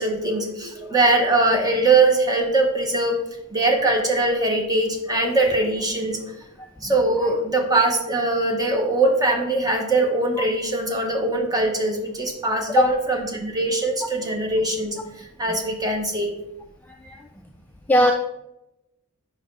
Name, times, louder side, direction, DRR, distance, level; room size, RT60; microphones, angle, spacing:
voice 1, 0.0-3.2 3.5-6.3 6.8-15.0 15.4-16.3, right 2 dB, 20° right, 2 dB, 1.1 m, -21 dB
voice 2, 6.6-7.0 10.4-10.5 12.8-12.9 15.5-15.6 16.8-17.3 17.9-18.1, left 1 dB, 10° left, 3 dB, 0.4 m, -21 dB
5.0 x 5.0 x 5.2 m, 0.88 s
head